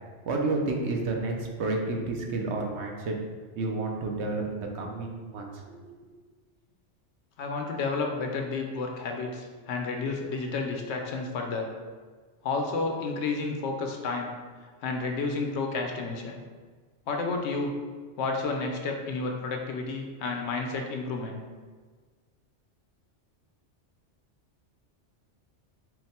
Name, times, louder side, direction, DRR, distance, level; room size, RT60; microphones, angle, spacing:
voice 1, 0.3-3.1 3.5-6.0, right 3 dB, 70° right, 1 dB, 0.9 m, -30 dB
voice 2, 7.4-11.7 12.4-14.3 14.8-16.4 17.1-17.7 18.2-21.4, left 3 dB, 70° left, 2 dB, 0.8 m, -31 dB
4.4 x 2.1 x 4.1 m, 1.5 s
omnidirectional pair, 1.2 m